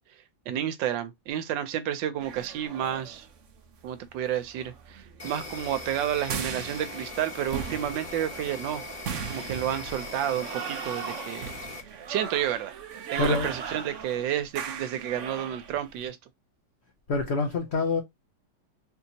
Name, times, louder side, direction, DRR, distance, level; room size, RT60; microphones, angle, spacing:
voice 1, 0.5-3.3 3.8-8.8 9.3-11.5 12.1-12.8 13.1-16.2, right 10 dB, 80° right, 1.3 m, -30 dB
sound 1, 2.2-16.0, right 6 dB, 60° right, 0.8 m, -39 dB
Insect, 5.2-11.8, left 2 dB, 10° left, 1.1 m, -40 dB
voice 2, 13.2-13.5 17.1-18.0, left 3 dB, 75° left, 0.6 m, -26 dB
4.0 x 2.8 x 2.7 m
omnidirectional pair, 2.0 m